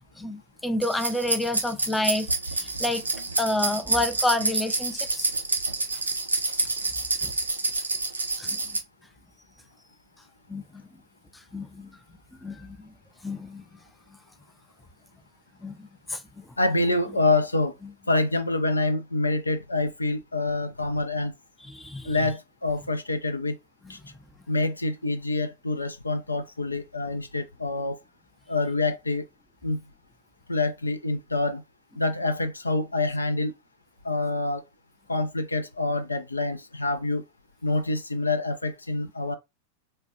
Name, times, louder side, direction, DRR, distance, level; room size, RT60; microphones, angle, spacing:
voice 1, 0.2-3.0 3.4-5.3 7.2-7.3 8.4-8.6 10.5-10.6 11.5-11.9 12.4-12.9 13.2-13.6 15.6-16.2 21.7-22.2, left 1 dB, 5° left, 0.4 m, -29 dB
sound 1, 0.8-8.8, right 3 dB, 80° right, 0.6 m, -28 dB
voice 2, 16.6-17.7 18.1-21.3 22.1-23.6 23.9-24.0 24.5-28.0 28.5-29.2 29.6-29.8 30.5-31.6 32.0-33.5 34.0-34.6 35.1-37.2 37.6-39.4, left 2 dB, 80° left, 0.4 m, -26 dB
4.0 x 2.2 x 2.6 m
figure-of-eight pair, 90°, 0 cm